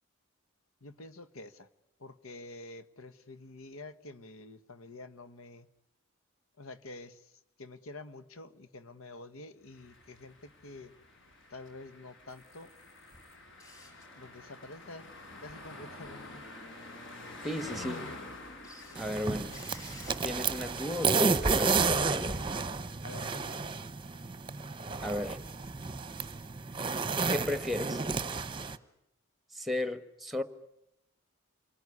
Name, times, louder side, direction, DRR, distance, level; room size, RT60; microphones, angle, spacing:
voice 1, 0.8-1.7 2.0-5.7 6.6-7.2 7.6-10.9 11.5-12.7 14.2-15.1 15.4-16.4 23.0-23.8, left 2 dB, 80° left, 1.4 m, -48 dB
sound 1, 9.7-22.7, left 2 dB, 60° left, 5.2 m, -48 dB
sound 2, 12.3-16.1 16.4-16.5 17.0-18.0 18.6-28.0, left 1 dB, 15° left, 5.6 m, -57 dB
voice 2, 17.4-18.1 18.9-19.6 20.2-22.4 25.0-25.4 27.3-28.0 29.5-30.4, left 1 dB, ahead, 1.2 m, -35 dB
sound 3, 19.0-28.8, right 4 dB, 25° right, 0.9 m, -31 dB
28.0 x 20.0 x 9.8 m
head